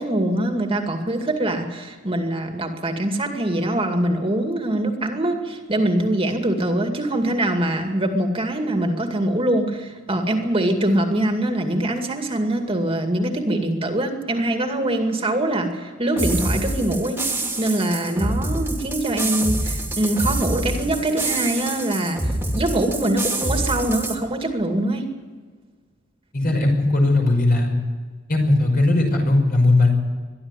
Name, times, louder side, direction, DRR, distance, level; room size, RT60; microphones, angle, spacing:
voice 1, 0.0-25.0, right 1 dB, 30° right, 4 dB, 2.3 m, -23 dB
sound 1, 16.2-24.2, right 1 dB, 10° right, 2.5 m, -26 dB
voice 2, 26.3-27.7 28.3-29.9, left 2 dB, 50° left, 2 dB, 5.8 m, -18 dB
22.5 x 12.5 x 9.9 m, 1.5 s
head